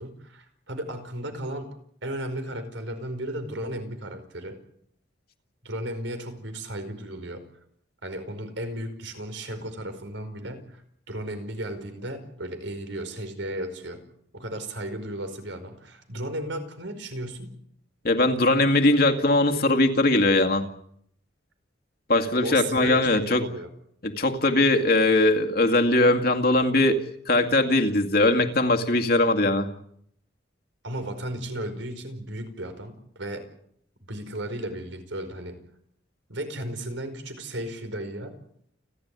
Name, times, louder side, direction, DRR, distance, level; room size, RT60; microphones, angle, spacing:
voice 1, 0.0-1.7 2.0-4.6 5.6-7.4 8.0-10.8 11.1-14.0 14.3-17.5 22.4-23.7 30.8-33.5 34.0-35.6 36.3-38.3, right 1 dB, 80° right, 8 dB, 5.0 m, -34 dB
voice 2, 18.0-20.6 22.1-23.4 24.0-27.0 27.3-29.7, left 2 dB, 50° left, 4 dB, 2.2 m, -20 dB
30.0 x 12.0 x 9.7 m, 0.69 s
head